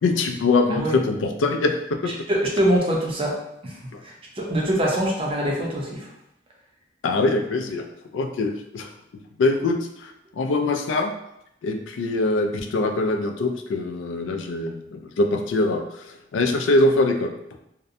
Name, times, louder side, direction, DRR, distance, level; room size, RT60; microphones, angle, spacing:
voice 1, 0.0-2.1 3.9-4.0 7.0-7.8 8.1-8.9 9.4-11.1 11.6-16.1 16.3-17.3, left 2 dB, 80° left, 5 dB, 0.3 m, -23 dB
voice 2, 2.3-6.1, right 1 dB, 30° right, -1 dB, 0.5 m, -24 dB
2.6 x 2.1 x 2.5 m, 0.81 s
head